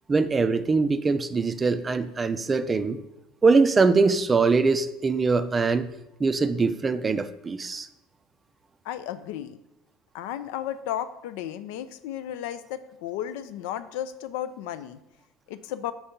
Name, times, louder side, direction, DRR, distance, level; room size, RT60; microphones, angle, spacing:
voice 1, 0.1-3.0 3.4-5.9 6.2-7.9, right 4 dB, 20° right, 11 dB, 0.4 m, -22 dB
voice 2, 8.9-9.6 10.1-15.0 15.5-15.9, left 11 dB, 80° left, 12 dB, 0.3 m, -34 dB
4.5 x 4.1 x 5.1 m, 0.88 s
supercardioid pair, 110°, 0 cm